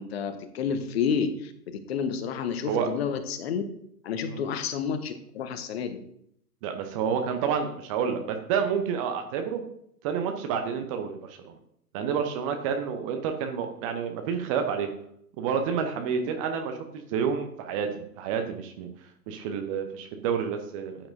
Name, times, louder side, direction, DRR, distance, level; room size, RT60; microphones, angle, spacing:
voice 1, 0.0-3.6 4.0-6.0, left 6 dB, 40° left, 10 dB, 1.1 m, -30 dB
voice 2, 6.6-9.6 10.0-11.5 11.9-14.9 15.4-18.9 19.3-21.1, right 7 dB, 20° right, 5 dB, 0.7 m, -29 dB
14.5 x 8.8 x 2.6 m, 0.72 s
figure-of-eight pair, 110°, 48 cm